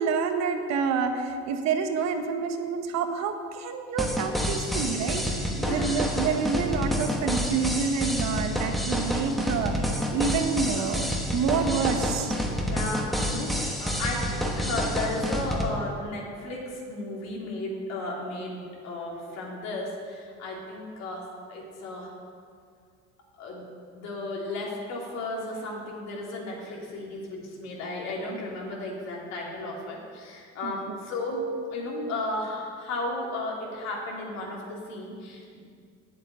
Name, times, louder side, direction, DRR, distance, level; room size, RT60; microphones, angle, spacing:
voice 1, 0.0-12.3 30.6-31.0, right 5 dB, 65° right, 6 dB, 1.2 m, -28 dB
sound 1, 4.0-15.7, equal, ahead, 1.0 m, -29 dB
voice 2, 5.5-5.9 12.6-22.1 23.4-23.7 23.9-35.6, left 2 dB, 60° left, -2 dB, 3.1 m, -34 dB
8.6 x 7.8 x 9.0 m, 2.2 s
cardioid pair, 150°, 30 cm